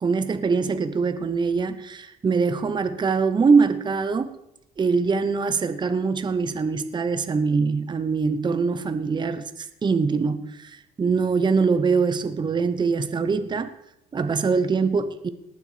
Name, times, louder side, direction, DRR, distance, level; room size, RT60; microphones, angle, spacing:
voice 1, 0.0-4.3 4.8-13.7 14.1-15.3, right 5 dB, 25° right, 10 dB, 0.9 m, -23 dB
18.5 x 6.9 x 5.0 m, 0.85 s
cardioid pair, 110°, 17 cm